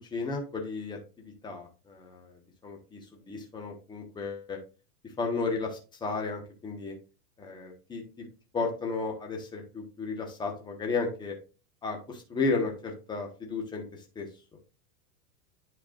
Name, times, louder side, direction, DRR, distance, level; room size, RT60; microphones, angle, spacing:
voice 1, 0.1-2.3 2.6-4.6 5.2-6.9 7.4-8.3 8.5-11.3 11.8-13.8 14.1-14.3, left 4 dB, 10° left, 1 dB, 1.2 m, -33 dB
10.5 x 4.7 x 2.5 m, 0.33 s
supercardioid pair, 160°, 47 cm